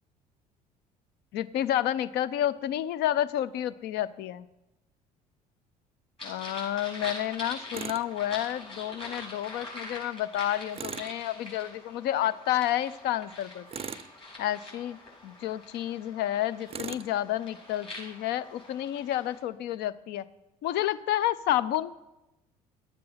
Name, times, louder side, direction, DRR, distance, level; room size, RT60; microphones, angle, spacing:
voice 1, 1.3-4.5 6.2-13.7 14.4-20.2 20.6-21.9, left 12 dB, 55° left, 16 dB, 0.6 m, -30 dB
sound 1, 6.2-19.4, left 2 dB, 25° left, 4.3 m, -44 dB
Tools, 7.7-8.1 10.7-11.2 13.7-14.1 16.7-17.1, right 7 dB, 30° right, 0.5 m, -38 dB
11.5 x 7.5 x 5.7 m, 0.96 s
figure-of-eight pair, 55°, 20 cm